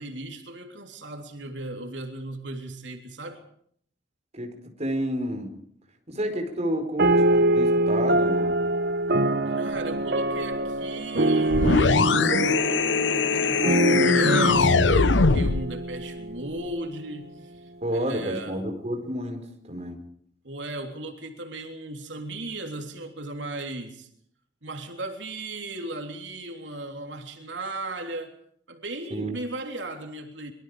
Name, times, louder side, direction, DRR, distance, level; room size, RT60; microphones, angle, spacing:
voice 1, 0.0-3.4 9.5-18.6 20.4-24.1 24.6-28.3 28.7-30.5, right 2 dB, 85° right, 3.4 m, -36 dB
voice 2, 4.3-5.6 6.1-8.6 17.8-20.1 29.1-29.4, equal, 40° right, 4.7 m, -30 dB
sound 1, 7.0-16.7, right 1 dB, 60° right, 1.0 m, -24 dB
sound 2, 11.5-15.7, left 4 dB, 90° left, 0.9 m, -21 dB
25.5 x 23.0 x 5.1 m
head